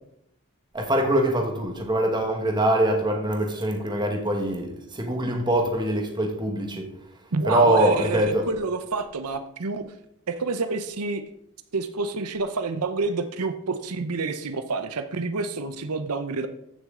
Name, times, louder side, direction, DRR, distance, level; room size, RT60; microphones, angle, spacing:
voice 1, 0.7-6.9 7.4-8.4, right 1 dB, 20° right, 2 dB, 1.5 m, -23 dB
voice 2, 7.3-9.9 10.3-11.2 11.7-16.5, right 4 dB, 90° right, 9 dB, 0.8 m, -28 dB
14.5 x 6.3 x 3.8 m, 0.76 s
head